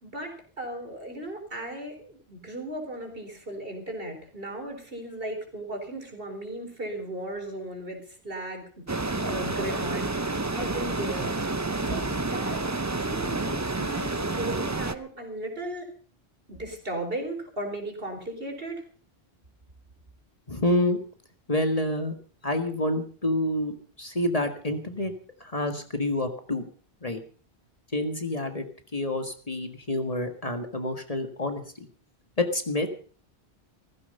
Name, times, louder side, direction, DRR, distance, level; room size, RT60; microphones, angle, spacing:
voice 1, 0.0-8.8 9.1-11.5 11.8-15.9 16.5-18.8, right 1 dB, 60° right, 3 dB, 4.4 m, -36 dB
sound 1, 8.9-15.0, right 2 dB, 20° right, 0.7 m, -29 dB
voice 2, 20.5-21.0 21.5-22.1 22.4-25.1 25.4-26.6 27.0-27.2 27.9-28.7 28.9-31.9 32.4-32.9, left 1 dB, 35° left, 7 dB, 1.8 m, -28 dB
16.0 x 15.0 x 5.5 m, 0.43 s
omnidirectional pair, 1.1 m